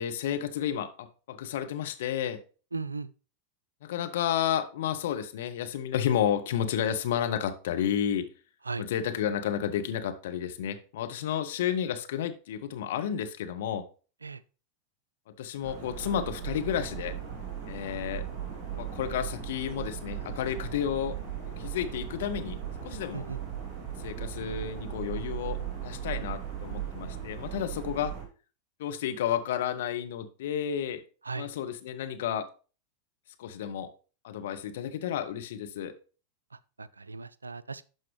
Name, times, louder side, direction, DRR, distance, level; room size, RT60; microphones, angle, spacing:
voice 1, 0.0-2.4 3.8-8.3 8.8-13.9 15.4-17.2 17.7-18.2 18.7-21.2 21.6-22.6 22.8-23.2 24.0-28.1 28.8-31.0 31.4-32.5 33.4-33.9 34.2-35.9, left 9 dB, 55° left, 0.8 m, -31 dB
voice 2, 2.7-3.1 8.6-8.8 14.2-14.4 23.1-23.4 31.2-31.5 36.5-37.8, right 4 dB, 80° right, 0.3 m, -37 dB
sound 1, 15.6-28.3, right 9 dB, 30° right, 2.6 m, -37 dB
12.0 x 4.5 x 3.1 m
figure-of-eight pair, 90°, 0 cm